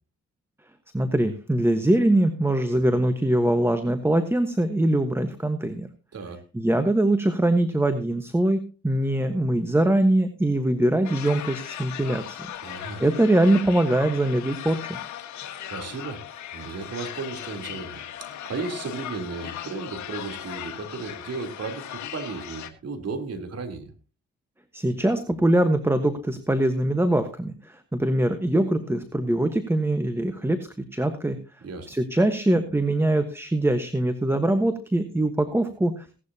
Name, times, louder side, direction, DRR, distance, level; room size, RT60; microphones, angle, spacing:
voice 1, 0.9-5.9 6.5-12.4 13.0-15.0 24.7-31.4 31.9-36.1, right 1 dB, 10° right, 9 dB, 1.3 m, -23 dB
sound 1, 11.0-22.7, left 11 dB, 80° left, 1.6 m, -38 dB
voice 2, 12.6-13.0 15.7-16.2 16.5-23.9 31.6-31.9, right 4 dB, 60° right, 5 dB, 3.5 m, -35 dB
17.5 x 12.0 x 2.9 m, 0.35 s
cardioid pair, 85°, 29 cm